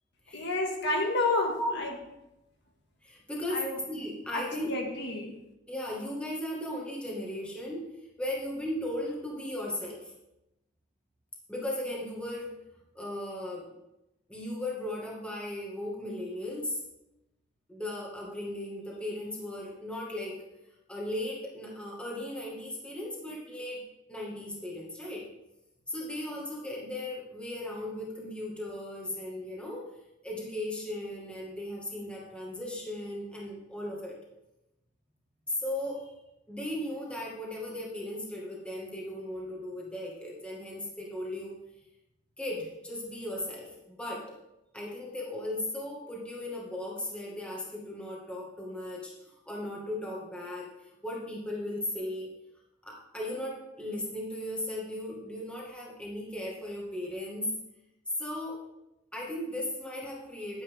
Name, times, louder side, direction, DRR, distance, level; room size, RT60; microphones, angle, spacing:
voice 1, 0.3-1.9 3.5-3.7 4.3-5.3, left 2 dB, 60° left, 1 dB, 2.0 m, -30 dB
voice 2, 3.0-4.8 5.7-7.8 8.2-10.1 11.5-12.5 13.0-13.7 14.3-16.8 17.7-20.5 20.9-23.8 24.1-25.3 25.9-29.8 30.2-34.2 35.5-36.1 36.5-41.5 42.4-44.4 44.7-50.7 51.0-52.3 52.8-57.5 58.2-58.6 59.1-60.6, left 1 dB, 5° left, -4 dB, 2.0 m, -36 dB
11.0 x 9.8 x 3.7 m, 0.92 s
head